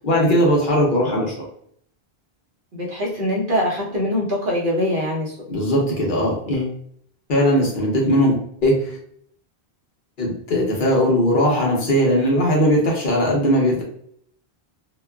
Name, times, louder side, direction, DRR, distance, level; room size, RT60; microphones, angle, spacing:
voice 1, 0.0-1.5 5.5-6.7 7.3-8.4 8.6-8.9 10.2-13.8, equal, 55° left, -2 dB, 0.9 m, -19 dB
voice 2, 2.7-5.4, left 1 dB, 55° right, -4 dB, 1.0 m, -23 dB
2.9 x 2.2 x 2.3 m, 0.65 s
omnidirectional pair, 1.1 m